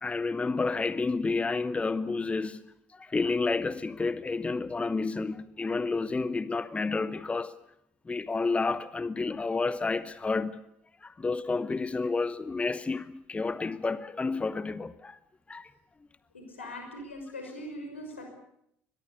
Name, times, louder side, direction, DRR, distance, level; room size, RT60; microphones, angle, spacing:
voice 1, 0.0-2.6 2.9-7.6 8.1-10.6 11.0-15.2 15.5-15.7 16.6-16.7, left 3 dB, 20° left, 1.0 m, -30 dB
voice 2, 16.3-18.3, left 1 dB, 85° left, 5.8 m, -41 dB
23.0 x 21.0 x 8.4 m
figure-of-eight pair, 55°, 6 cm